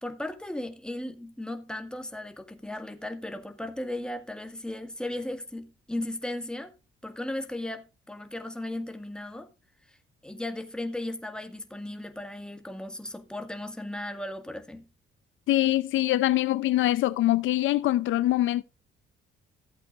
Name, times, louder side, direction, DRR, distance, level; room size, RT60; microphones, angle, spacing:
voice 1, 0.0-6.7 7.0-9.5 9.9-14.9, left 1 dB, 5° left, 1.8 m, -36 dB
voice 2, 15.5-18.6, left 15 dB, 80° left, 0.6 m, -24 dB
15.5 x 8.0 x 2.5 m
cardioid pair, 90°, 20 cm